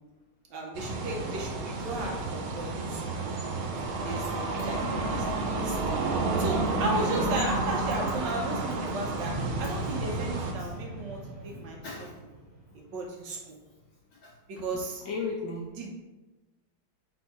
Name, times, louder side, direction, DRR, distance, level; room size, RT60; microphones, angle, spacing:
voice 1, 0.5-3.3 4.0-5.2 5.5-5.8 6.4-9.3 9.6-12.1 12.7-13.6 14.5-15.0 15.8-15.9, right 2 dB, 70° right, 0 dB, 1.2 m, -35 dB
sound 1, 0.7-10.5, right 3 dB, 90° right, 1.6 m, -31 dB
sound 2, 9.2-13.1, right 1 dB, 35° left, 0.7 m, -38 dB
voice 2, 10.6-11.0 11.5-12.1 14.1-14.7 15.0-15.7, left 4 dB, 75° left, -1 dB, 1.1 m, -38 dB
4.3 x 2.6 x 4.6 m, 1.1 s
omnidirectional pair, 2.2 m